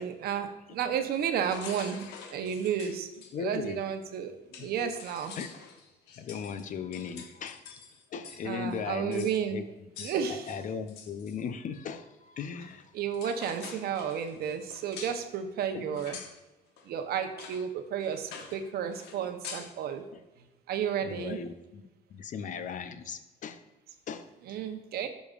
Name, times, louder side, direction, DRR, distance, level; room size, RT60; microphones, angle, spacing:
voice 1, 0.0-3.1 3.3-5.3 8.4-9.6 10.0-10.5 12.9-16.2 16.9-20.1 20.7-21.4 24.4-25.1, right 8 dB, 70° right, 7 dB, 0.8 m, -32 dB
sound 1, 1.5-3.3 4.1-4.2 4.5-8.5 8.7-8.8 9.1-9.4 9.9-11.4 12.7-12.8 13.1-15.2 15.9-16.4 16.8-16.9 17.4-17.7 18.0-18.6 18.9-19.8, left 6 dB, 90° left, 0.9 m, -46 dB
voice 2, 3.3-3.8 4.6-4.9 5.4-5.5 6.2-7.6 8.1-9.6 10.0-12.9 15.9-16.0 20.1-20.2 21.0-21.8 22.1-23.6 24.1-24.3, left 6 dB, 50° left, 10 dB, 0.6 m, -37 dB
11.5 x 5.1 x 2.5 m, 1.0 s
cardioid pair, 110°, 17 cm